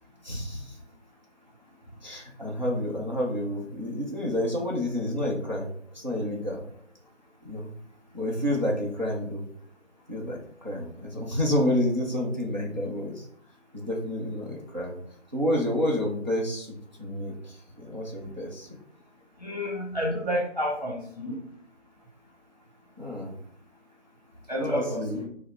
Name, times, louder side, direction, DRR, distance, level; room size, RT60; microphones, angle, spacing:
voice 1, 0.2-0.8 2.0-5.7 5.9-6.6 7.4-7.7 8.1-9.5 10.1-13.3 13.7-15.0 15.3-18.7 23.0-23.4 24.7-25.2, left 1 dB, 40° right, -2 dB, 0.7 m, -29 dB
voice 2, 19.4-21.4 24.5-25.2, equal, 35° left, -2 dB, 1.0 m, -30 dB
5.3 x 2.1 x 4.2 m, 0.64 s
figure-of-eight pair, 170°, 36 cm